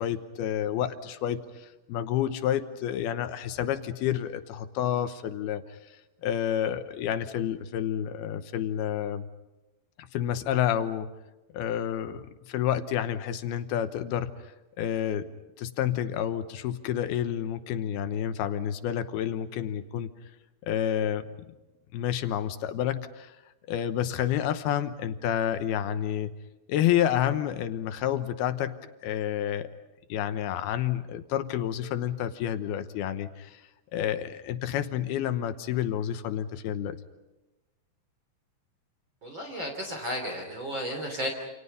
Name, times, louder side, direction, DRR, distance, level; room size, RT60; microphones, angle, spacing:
voice 1, 0.0-5.8 6.2-9.3 10.1-11.1 11.5-14.5 14.8-15.3 15.6-20.1 20.7-21.5 21.9-23.4 23.7-26.3 26.7-29.7 30.1-33.6 33.9-37.0, left 10 dB, 75° left, 10 dB, 2.8 m, -29 dB
voice 2, 39.2-41.3, equal, 30° right, 3 dB, 3.5 m, -33 dB
28.5 x 28.5 x 5.5 m, 1.1 s
omnidirectional pair, 4.8 m